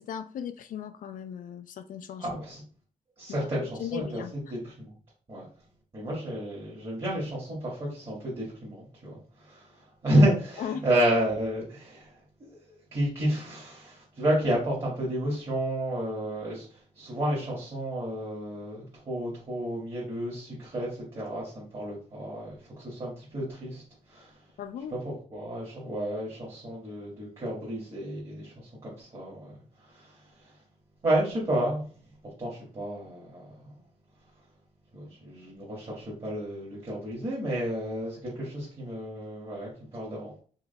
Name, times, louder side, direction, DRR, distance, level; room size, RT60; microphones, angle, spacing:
voice 1, 0.0-2.3 3.3-4.3 10.6-10.8 24.6-25.0, left 8 dB, 80° left, 0.4 m, -37 dB
voice 2, 2.2-2.6 3.2-4.2 4.5-4.9 5.3-5.4 5.9-12.1 12.9-23.8 24.1-24.3 25.0-29.5 29.8-30.2 31.0-31.8 32.2-33.5 34.9-40.4, right 1 dB, 40° right, 1.7 m, -31 dB
4.8 x 3.2 x 2.2 m
wide cardioid pair, 120°, 14 cm